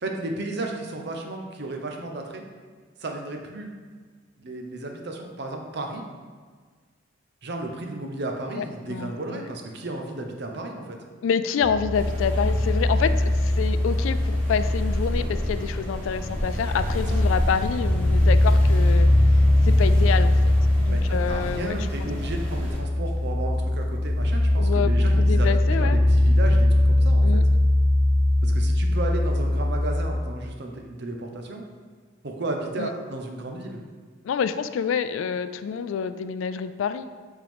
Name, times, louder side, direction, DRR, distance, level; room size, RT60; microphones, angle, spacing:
voice 1, 0.0-2.4 3.0-3.7 4.4-6.0 7.4-11.0 17.1-17.2 20.9-27.4 28.4-31.7 32.2-33.8, right 2 dB, 55° right, 3 dB, 0.7 m, -33 dB
voice 2, 8.5-9.4 11.2-19.1 19.6-21.8 24.6-24.9 25.2-26.0 27.2-27.4 32.8-32.9 34.3-37.1, left 7 dB, 75° left, 12 dB, 0.3 m, -27 dB
sound 1, 11.6-30.0, left 1 dB, 5° left, 1.7 m, -21 dB
sound 2, 11.9-22.8, equal, 40° right, 1.2 m, -33 dB
7.5 x 3.7 x 3.5 m, 1.5 s
head